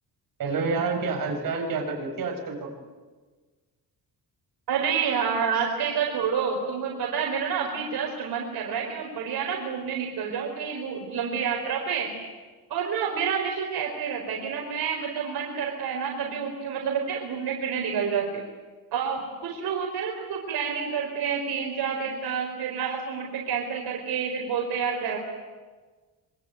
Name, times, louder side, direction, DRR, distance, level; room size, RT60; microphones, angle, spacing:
voice 1, 0.4-2.7, right 4 dB, 60° right, 1 dB, 6.6 m, -28 dB
voice 2, 4.7-12.1 12.7-18.4 18.9-25.2, right 6 dB, 85° right, 0 dB, 4.6 m, -28 dB
26.0 x 24.5 x 9.2 m, 1.4 s
cardioid pair, 180°, 37 cm